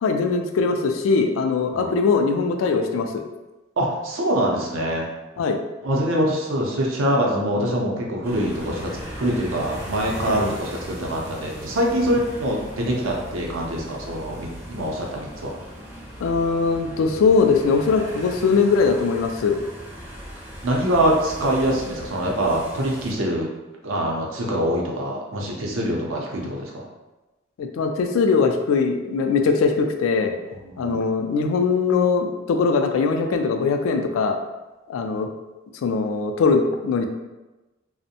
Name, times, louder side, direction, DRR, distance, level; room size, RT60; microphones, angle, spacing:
voice 1, 0.0-3.2 5.4-5.6 10.3-10.4 16.2-19.6 27.6-30.4 30.8-34.4 34.9-35.3 35.8-37.1, left 4 dB, 85° left, 5 dB, 0.3 m, -21 dB
voice 2, 3.8-5.1 5.8-8.9 9.2-15.5 20.6-23.5 23.8-26.9 30.7-31.0, right 1 dB, 85° right, -1 dB, 0.5 m, -24 dB
sound 1, 8.2-23.1, equal, 10° right, 0.4 m, -38 dB
2.5 x 2.1 x 2.7 m, 1.1 s
head